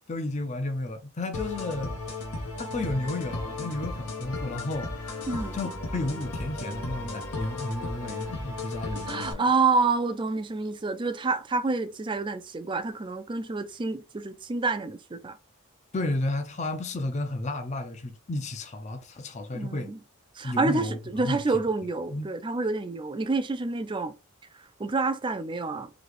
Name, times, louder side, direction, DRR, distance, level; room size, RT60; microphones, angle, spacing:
voice 1, 0.1-1.9 2.6-5.2 5.5-9.4 15.9-19.9 20.4-21.4 22.1-22.3, left 2 dB, 30° left, 0.5 m, -32 dB
sound 1, 1.3-9.3, left 2 dB, 85° left, 1.1 m, -35 dB
voice 2, 5.3-5.6 9.1-15.4 19.5-20.0 20.4-24.1 24.8-25.9, right 3 dB, 20° right, 0.4 m, -28 dB
4.0 x 2.8 x 3.2 m
head